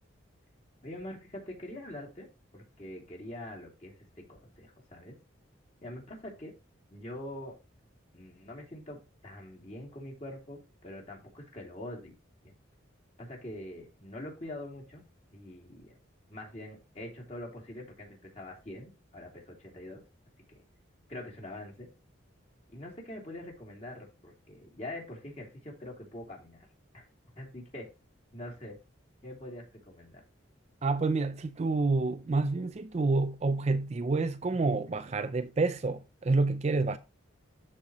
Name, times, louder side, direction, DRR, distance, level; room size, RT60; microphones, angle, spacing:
voice 1, 0.8-2.3 2.5-5.1 5.8-6.5 6.9-7.5 8.1-12.1 12.4-12.5 13.2-15.0 15.3-15.9 16.3-20.0 20.5-20.6 21.1-21.9 22.7-26.7 26.9-27.0 27.4-27.9 28.3-28.8 29.2-30.2, left 1 dB, 35° left, 2.7 m, -44 dB
voice 2, 30.8-37.0, right 3 dB, 30° right, 0.4 m, -28 dB
12.5 x 4.4 x 3.0 m
head